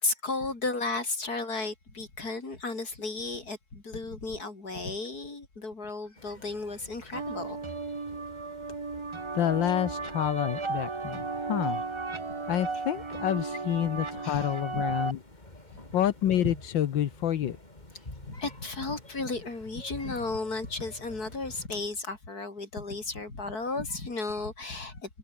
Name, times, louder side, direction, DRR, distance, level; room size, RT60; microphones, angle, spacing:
voice 1, 0.0-7.6 12.7-12.8 14.2-14.8 15.7-15.8 18.3-25.2, left 3 dB, 55° left, 5.1 m, -34 dB
sound 1, 6.2-21.7, left 1 dB, 20° left, 4.3 m, -48 dB
sound 2, 7.1-15.1, right 3 dB, 25° right, 0.7 m, -35 dB
voice 2, 9.3-11.8 12.5-15.2 15.9-17.6, left 11 dB, 80° left, 1.8 m, -28 dB
omnidirectional pair, 2.0 m